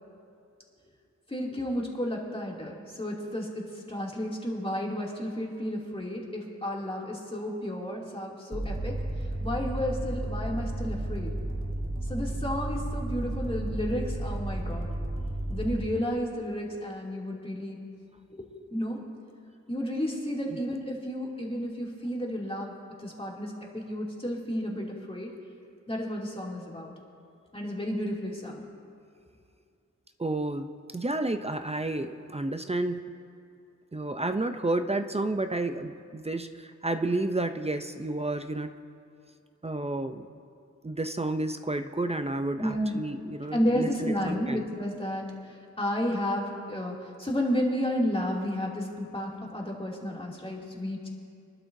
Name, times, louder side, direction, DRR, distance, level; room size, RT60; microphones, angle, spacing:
voice 1, 1.3-9.0 9.4-11.3 12.1-14.9 15.5-17.8 18.3-19.0 19.7-22.7 23.0-25.3 25.9-26.9 27.5-28.6 42.6-43.0 43.5-51.1, equal, 20° left, -3 dB, 2.7 m, -32 dB
sound 1, 8.5-15.8, right 1 dB, 45° right, 1.5 m, -32 dB
voice 2, 30.2-33.1 33.9-38.7 39.6-40.4 40.8-44.6, right 2 dB, 20° right, 8 dB, 0.6 m, -31 dB
24.5 x 12.0 x 2.7 m, 2.4 s
wide cardioid pair, 65°, 30 cm